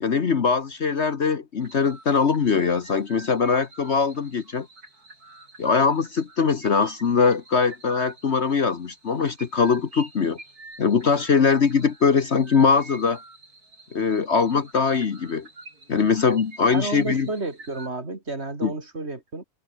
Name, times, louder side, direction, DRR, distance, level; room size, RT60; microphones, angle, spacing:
voice 1, 0.0-4.7 5.6-10.4 10.8-13.2 13.9-15.5 15.9-17.3 18.6-18.7, left 5 dB, 50° left, 1.4 m, -22 dB
sound 1, 1.6-17.9, right 2 dB, 80° right, 5.7 m, -47 dB
voice 2, 16.7-19.4, right 2 dB, 45° right, 3.6 m, -31 dB
omnidirectional pair, 1.6 m